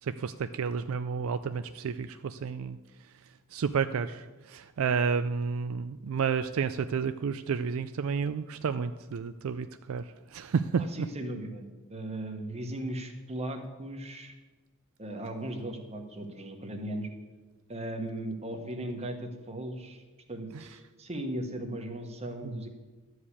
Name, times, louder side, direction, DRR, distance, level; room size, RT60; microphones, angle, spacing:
voice 1, 0.0-10.8 20.5-20.7 22.4-22.6, right 6 dB, 65° right, 10 dB, 0.4 m, -31 dB
voice 2, 10.8-14.3 15.0-17.1 17.7-20.0 20.3-22.7, right 1 dB, 30° right, 5 dB, 1.2 m, -37 dB
12.5 x 4.9 x 8.4 m, 1.2 s
head